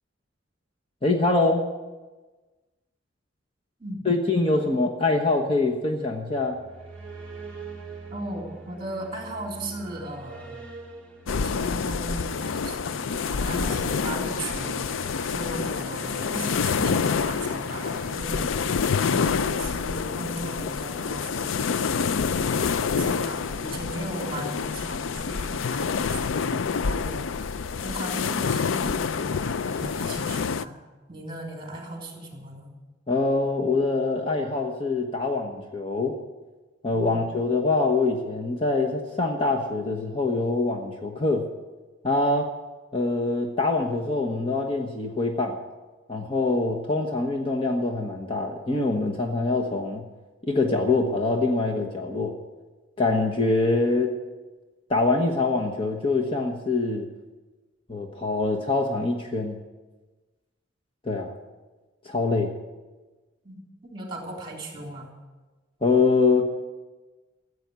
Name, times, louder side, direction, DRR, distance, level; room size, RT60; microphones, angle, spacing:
voice 1, 1.0-1.6 4.0-6.6 33.1-36.2 36.8-41.4 42.0-42.5 42.9-45.6 46.1-50.1 50.4-52.4 53.0-54.2 54.9-57.1 57.9-59.6 61.0-61.3 62.0-62.5 65.8-66.7, left 3 dB, 30° left, 1 dB, 1.2 m, -24 dB
sound 1, 6.4-19.2, right 4 dB, 5° left, 3.2 m, -44 dB
voice 2, 8.1-10.6 11.3-14.9 15.2-18.5 19.0-21.7 22.3-27.3 27.8-30.8 31.1-32.7 36.9-37.3 63.4-65.1, right 1 dB, 25° right, 1 dB, 3.4 m, -37 dB
sound 2, 11.3-30.7, left 5 dB, 85° left, 0.5 m, -27 dB
15.0 x 8.2 x 9.6 m, 1.2 s
head